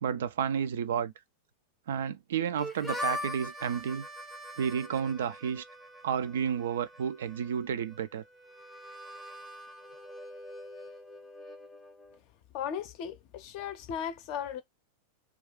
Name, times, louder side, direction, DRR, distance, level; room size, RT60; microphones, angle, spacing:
voice 1, 0.0-1.1 1.9-4.1 4.6-5.6 6.0-8.2, right 8 dB, 60° right, 0.3 m, -31 dB
Harmonica, 2.6-12.2, left 1 dB, ahead, 0.7 m, -42 dB
voice 2, 12.5-14.6, left 8 dB, 45° left, 0.5 m, -36 dB
2.3 x 2.3 x 3.5 m
figure-of-eight pair, 90°, 0 cm